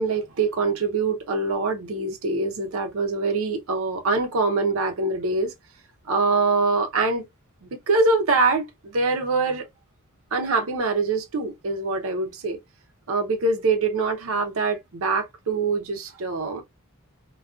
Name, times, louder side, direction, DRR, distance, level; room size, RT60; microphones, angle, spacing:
voice 1, 0.0-5.5 6.1-7.2 7.6-9.7 10.3-12.6 13.1-16.6, right 3 dB, 70° right, 0.6 m, -24 dB
2.4 x 2.2 x 2.3 m
head